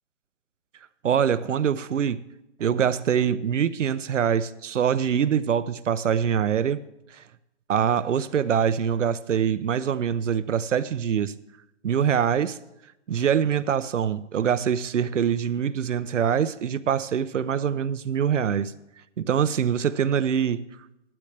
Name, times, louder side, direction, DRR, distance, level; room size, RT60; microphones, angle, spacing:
voice 1, 1.0-2.2 2.6-6.8 7.1-7.2 7.7-11.3 11.8-12.6 13.1-18.7 19.2-20.6, right 8 dB, 70° right, 0.7 m, -24 dB
15.0 x 12.0 x 3.3 m
hypercardioid pair, 170°, 38 cm